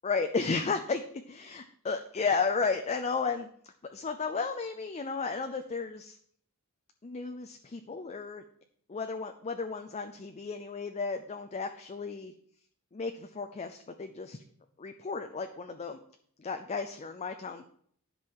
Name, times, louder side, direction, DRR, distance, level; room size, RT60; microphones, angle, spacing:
voice 1, 0.0-1.0 1.3-3.5 3.9-6.2 7.0-8.4 8.9-12.3 12.9-14.4 14.8-16.0 16.4-17.6, left 4 dB, 30° left, 7 dB, 0.5 m, -33 dB
10.5 x 5.5 x 4.5 m, 0.62 s
head